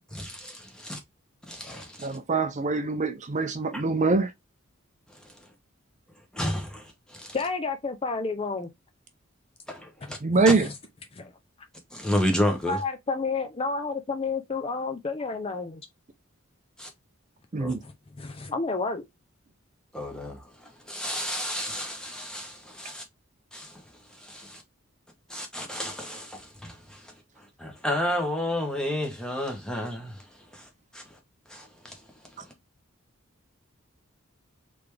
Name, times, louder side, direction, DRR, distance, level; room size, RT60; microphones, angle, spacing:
voice 1, 0.1-1.0 1.5-2.2 5.2-5.3 6.3-7.4 9.7-10.2 11.9-12.8 16.8-16.9 17.6-17.7 19.9-23.0 23.5-23.8 24.2-24.6 25.3-27.1 27.6-30.2 30.5-31.0 31.5-32.0, left 1 dB, 5° left, 1.2 m, -31 dB
voice 2, 2.0-4.3 10.2-10.7 17.5-17.8, right 3 dB, 35° right, 0.6 m, -24 dB
voice 3, 7.3-8.7 10.3-10.7 11.1-11.3 12.7-15.9 17.8-19.0, left 4 dB, 25° left, 0.5 m, -31 dB
4.0 x 3.4 x 3.3 m
head